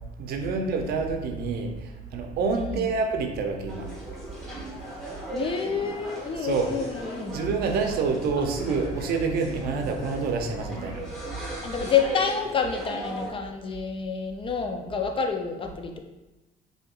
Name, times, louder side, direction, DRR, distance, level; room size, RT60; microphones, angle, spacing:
voice 1, 0.2-3.9 6.4-6.7 7.3-11.0, right 4 dB, 65° right, 4 dB, 0.5 m, -27 dB
voice 2, 2.5-2.9 5.3-7.4 8.4-8.5 11.6-16.0, left 6 dB, 30° left, 5 dB, 0.4 m, -28 dB
sound 1, 3.7-13.3, right 1 dB, ahead, 1.5 m, -38 dB
4.2 x 2.8 x 2.3 m, 1.1 s
cardioid pair, 110°, 17 cm